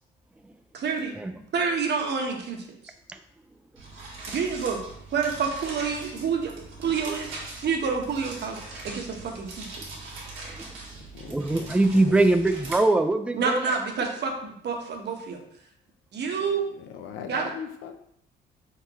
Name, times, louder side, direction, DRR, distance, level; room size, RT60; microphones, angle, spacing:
voice 1, 0.7-1.1 1.5-2.7 4.3-4.8 5.1-6.5 6.8-7.3 7.6-10.0 13.3-15.4 16.1-16.6 17.3-17.5, right 5 dB, 60° right, 2 dB, 0.9 m, -28 dB
sound 1, 3.8-12.8, right 2 dB, 85° right, 1.5 m, -41 dB
voice 2, 10.4-10.7 11.3-13.6, right 2 dB, 5° right, 7 dB, 0.4 m, -22 dB
voice 3, 11.1-12.3 16.8-18.0, left 7 dB, 85° left, 7 dB, 0.6 m, -40 dB
4.3 x 3.8 x 3.0 m, 0.72 s
cardioid pair, 90°, 20 cm